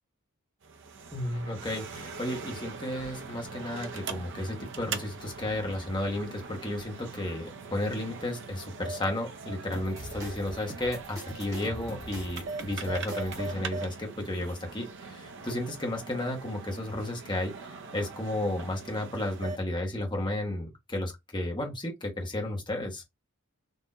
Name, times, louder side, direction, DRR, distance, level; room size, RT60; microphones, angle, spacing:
sound 1, 0.6-19.6, right 4 dB, 55° right, 0.6 m, -41 dB
voice 1, 1.1-17.5 17.9-23.0, left 1 dB, 20° left, 1.2 m, -33 dB
sound 2, 9.7-13.5, right 1 dB, 15° right, 1.2 m, -43 dB
3.9 x 2.8 x 2.6 m
head